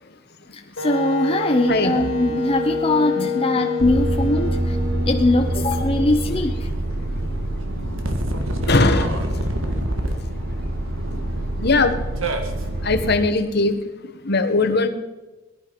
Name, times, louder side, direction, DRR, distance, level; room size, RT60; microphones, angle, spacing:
Wind instrument woodwind instrument, 0.8-6.6, left 1 dB, 80° left, 2.8 m, -28 dB
voice 1, 0.8-4.8 5.0-6.5, left 2 dB, 30° left, 3 dB, 0.8 m, -21 dB
sound 1, 1.5-5.9, right 3 dB, 60° right, 3.5 m, -34 dB
sound 2, 3.8-13.1, right 1 dB, 90° right, 1.8 m, -25 dB
voice 2, 8.7-9.2 11.6-11.9 12.8-13.8 14.2-14.9, left 3 dB, 55° left, 9 dB, 1.3 m, -19 dB
18.5 x 11.5 x 5.3 m, 1.1 s
head